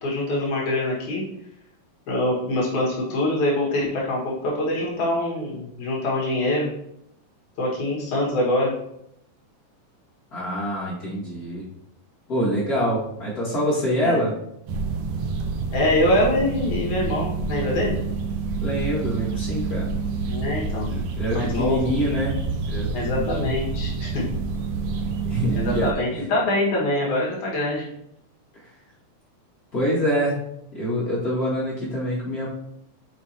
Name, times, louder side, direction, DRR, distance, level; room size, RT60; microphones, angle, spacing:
voice 1, 0.0-1.2 2.1-6.7 7.6-8.7 14.0-14.2 15.7-18.0 20.3-20.9 21.3-21.8 22.9-24.2 25.5-27.8, left 1 dB, 70° left, -5 dB, 3.0 m, -24 dB
voice 2, 10.3-11.7 12.3-14.3 18.6-19.9 20.9-22.4 22.7-23.4 25.2-26.3 28.5-28.7 29.7-30.4 30.7-32.5, equal, 35° left, -9 dB, 2.1 m, -25 dB
sound 1, 14.7-25.9, right 4 dB, 80° right, 2.2 m, -28 dB
7.2 x 5.2 x 2.8 m, 0.76 s
omnidirectional pair, 3.5 m